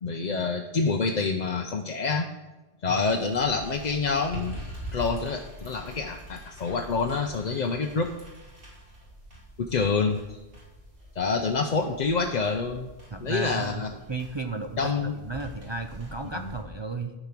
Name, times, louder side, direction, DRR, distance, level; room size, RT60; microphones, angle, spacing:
voice 1, 0.0-2.3 2.8-4.6 4.9-8.1 9.6-10.4 11.2-12.9 13.2-13.9 14.8-15.2 16.4-16.5, left 4 dB, 45° left, 3 dB, 0.7 m, -27 dB
sound 1, 2.8-16.6, equal, 55° right, 3.4 m, -44 dB
voice 2, 13.1-17.1, right 3 dB, 30° right, 5 dB, 0.5 m, -34 dB
13.0 x 5.1 x 5.9 m, 1.1 s
omnidirectional pair, 1.1 m